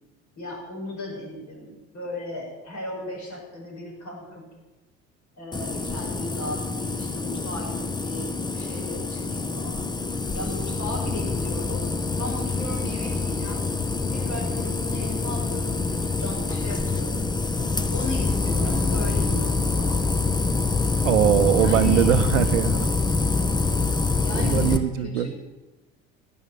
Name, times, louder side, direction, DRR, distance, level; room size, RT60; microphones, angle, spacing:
voice 1, 0.4-4.5 5.4-9.8 10.3-11.9 12.2-13.7 14.1-17.3 17.9-20.1 21.5-22.1 24.2-25.3, left 1 dB, 45° left, -3 dB, 6.4 m, -36 dB
sound 1, 5.5-24.8, left 3 dB, 10° left, 0.9 m, -25 dB
voice 2, 21.0-22.8 24.3-25.3, right 11 dB, 80° right, 12 dB, 0.9 m, -21 dB
11.0 x 9.0 x 9.2 m, 1.1 s
hypercardioid pair, 65°, 39 cm